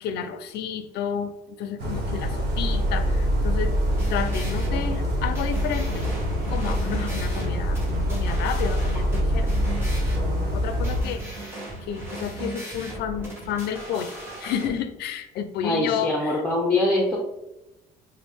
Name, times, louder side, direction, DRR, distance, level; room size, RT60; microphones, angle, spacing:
voice 1, 0.0-3.7 4.1-6.1 6.5-9.5 10.5-11.5 11.8-16.4, left 8 dB, 75° left, 9 dB, 0.4 m, -31 dB
sound 1, 1.8-11.0, equal, 75° right, 1.0 m, -25 dB
sound 2, 3.7-14.7, right 1 dB, 15° right, 1.2 m, -37 dB
voice 2, 15.6-17.2, left 2 dB, 10° left, -3 dB, 0.6 m, -23 dB
4.0 x 2.1 x 3.5 m, 0.93 s
cardioid pair, 110°, 17 cm